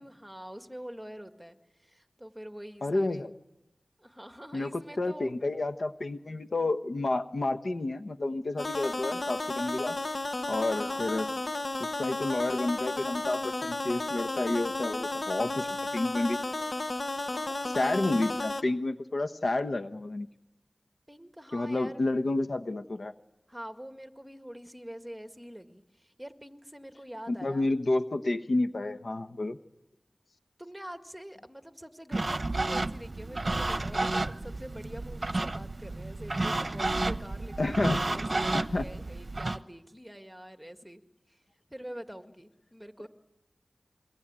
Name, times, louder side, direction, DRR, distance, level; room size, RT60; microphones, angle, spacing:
voice 1, 0.0-3.3 4.0-5.3 10.6-11.4 17.3-18.0 21.1-22.2 23.5-27.7 30.6-41.0 41.3-41.4 41.7-43.1, equal, 5° right, 7 dB, 1.9 m, -45 dB
voice 2, 2.8-3.3 4.5-9.9 10.5-11.3 11.8-15.7 15.9-16.4 17.7-20.3 21.5-23.1 27.3-29.6 37.6-38.0 38.5-38.8, left 2 dB, 70° left, 7 dB, 1.1 m, -30 dB
sound 1, 8.6-18.6, left 2 dB, 50° left, 1.2 m, -33 dB
sound 2, 32.1-39.6, right 2 dB, 45° right, 0.9 m, -31 dB
28.0 x 23.0 x 8.9 m, 0.94 s
wide cardioid pair, 60°, 0 cm